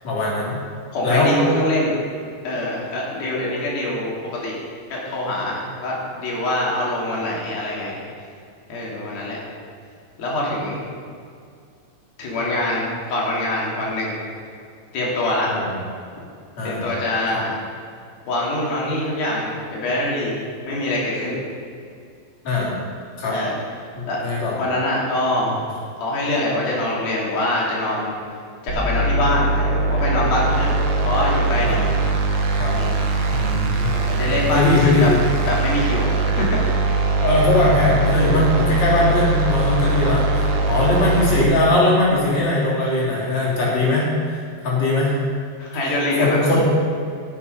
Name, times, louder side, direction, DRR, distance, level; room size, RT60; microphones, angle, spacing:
voice 1, 0.0-0.6 1.0-1.3 15.5-15.8 16.6-16.8 17.3-17.4 22.4-22.7 23.2-23.3 24.2-24.6 25.5-25.6 31.6-31.8 32.6-32.8 33.3-33.9 34.2-35.2 37.2-45.2 45.8-46.6, left 2 dB, 45° left, -6 dB, 4.2 m, -20 dB
voice 2, 0.9-2.0 2.4-4.1 4.4-4.6 4.9-8.0 8.7-9.4 10.2-10.8 12.2-14.2 14.9-15.5 16.6-17.5 18.3-20.4 20.7-21.4 23.3-23.5 24.1-24.2 24.6-25.5 26.0-28.1 28.6-30.8 31.1-31.8 32.7-33.0 33.9-35.1 35.5-36.6 45.6-46.6, left 1 dB, 70° left, -4 dB, 4.5 m, -24 dB
sound 1, 28.7-41.4, right 2 dB, 70° right, 1.5 m, -21 dB
14.0 x 8.2 x 5.6 m, 2.3 s
omnidirectional pair, 4.4 m